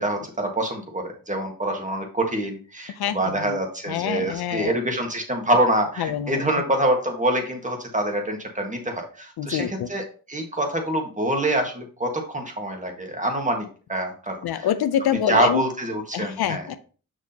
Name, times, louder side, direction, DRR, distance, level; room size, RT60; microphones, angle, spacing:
voice 1, 0.0-14.7 15.3-16.6, right 1 dB, 20° right, 3 dB, 1.6 m, -25 dB
voice 2, 3.0-3.6 3.9-4.8 6.0-6.4 9.4-9.9 14.4-15.6 16.1-16.8, left 9 dB, 80° left, 11 dB, 0.6 m, -26 dB
6.3 x 6.1 x 2.8 m, 0.38 s
wide cardioid pair, 105°, 38 cm